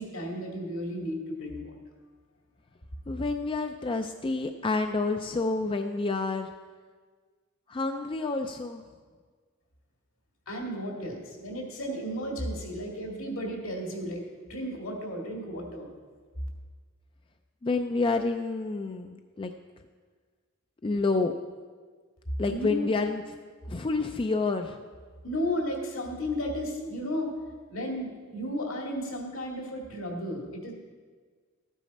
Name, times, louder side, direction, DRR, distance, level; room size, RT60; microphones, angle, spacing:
voice 1, 0.0-1.7 10.5-14.2 14.5-15.9 22.4-22.9 25.2-27.3 27.7-30.7, equal, 70° left, 0 dB, 2.2 m, -33 dB
voice 2, 3.1-6.5 7.7-8.8 17.6-19.5 20.8-21.3 22.4-23.2 23.7-24.8, left 3 dB, 25° left, 6 dB, 0.4 m, -28 dB
13.5 x 9.1 x 4.2 m, 1.5 s
head